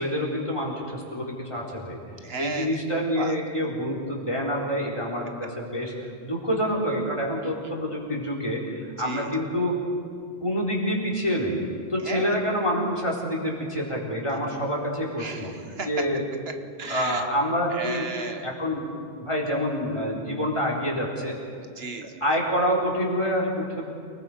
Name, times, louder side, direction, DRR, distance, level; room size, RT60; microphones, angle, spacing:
voice 1, 0.0-2.0 2.4-5.9 6.2-9.8 10.4-11.6 11.9-15.5 15.8-16.2 16.9-18.0 18.4-18.9 19.2-21.4 22.2-23.9, equal, 25° left, -2 dB, 4.0 m, -27 dB
voice 2, 2.2-2.8 3.2-3.3 7.4-7.5 9.0-9.3 12.0-12.4 15.2-15.9 16.8-17.3 17.7-18.5 21.6-22.2, right 4 dB, 70° right, 6 dB, 1.3 m, -34 dB
29.0 x 19.5 x 5.0 m, 2.3 s
omnidirectional pair, 1.1 m